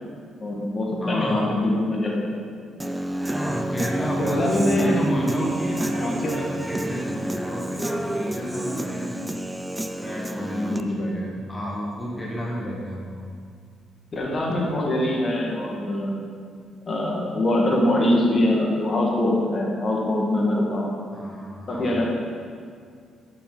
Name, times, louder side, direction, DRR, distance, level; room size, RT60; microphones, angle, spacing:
voice 1, 0.4-2.4 4.2-5.0 5.9-6.3 10.6-11.2 12.6-12.8 14.1-16.3 16.9-21.0 21.7-22.0, left 1 dB, 40° left, -2 dB, 1.8 m, -23 dB
voice 2, 1.0-1.5 3.3-9.2 10.0-13.2 21.1-21.9, equal, 10° left, -3 dB, 1.3 m, -31 dB
Human voice / Guitar, 2.8-10.8, right 1 dB, 10° right, 0.4 m, -29 dB
11.0 x 6.0 x 4.0 m, 2.2 s
cardioid pair, 90°, 0 cm